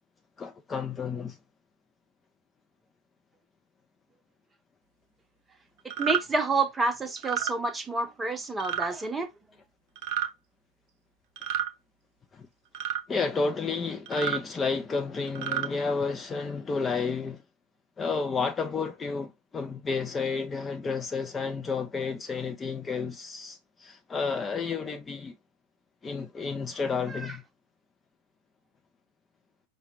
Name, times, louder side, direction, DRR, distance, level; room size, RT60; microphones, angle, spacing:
voice 1, 0.4-1.4 12.3-12.5 13.1-17.4 18.0-25.3 26.0-27.4, left 4 dB, 20° left, 0.5 m, -31 dB
sound 1, 5.9-6.2 7.2-7.5 8.6-8.9 9.9-10.3 11.4-11.7 12.7-13.0 14.1-14.4 15.3-15.7, right 10 dB, 45° right, 0.8 m, -30 dB
voice 2, 6.0-9.3 27.1-27.3, right 3 dB, 10° right, 0.8 m, -29 dB
5.5 x 2.2 x 3.1 m
figure-of-eight pair, 90°, 0 cm